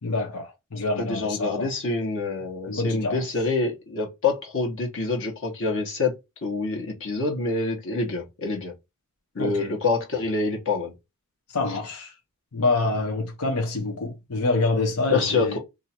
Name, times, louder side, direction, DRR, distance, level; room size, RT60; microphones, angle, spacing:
voice 1, 0.0-1.7 2.7-3.2 9.4-9.7 11.5-12.1 12.5-15.6, left 3 dB, 85° left, 0.8 m, -26 dB
voice 2, 1.0-6.1 6.4-8.7 9.3-10.9 15.1-15.6, left 3 dB, 60° left, 1.2 m, -26 dB
2.7 x 2.6 x 4.3 m
head